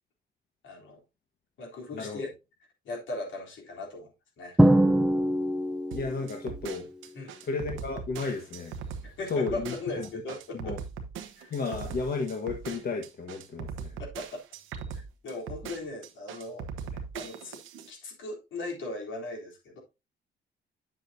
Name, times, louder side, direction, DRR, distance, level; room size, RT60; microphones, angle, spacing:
voice 1, 0.6-1.0 1.6-2.3 2.8-4.6 7.1-7.3 9.0-10.8 11.4-11.5 14.0-14.4 14.9-16.7 17.1-17.6 17.9-19.8, left 2 dB, 75° left, -1 dB, 3.6 m, -38 dB
Drum, 4.6-6.3, right 1 dB, 5° right, 0.6 m, -22 dB
voice 2, 5.9-6.9 7.5-8.7 9.3-9.7 10.6-10.8 11.5-13.9, left 4 dB, 50° left, 2 dB, 1.5 m, -33 dB
sound 1, 5.9-17.9, right 6 dB, 85° right, 1.1 m, -40 dB
8.9 x 7.5 x 2.7 m, 0.25 s
cardioid pair, 90°, 20 cm